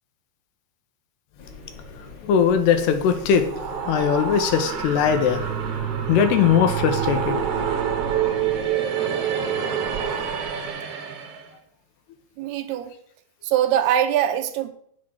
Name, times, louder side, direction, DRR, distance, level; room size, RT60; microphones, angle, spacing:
sound 1, 1.4-8.7, left 2 dB, 40° left, 2.2 m, -41 dB
voice 1, 2.2-3.5 3.9-5.4 6.1-7.4, left 7 dB, 85° left, 3.2 m, -20 dB
Wind and Ghost, 3.2-11.5, right 8 dB, 55° right, 1.8 m, -27 dB
voice 2, 12.4-12.9 13.4-14.7, right 10 dB, 80° right, 2.8 m, -22 dB
8.8 x 7.7 x 6.3 m
omnidirectional pair, 4.7 m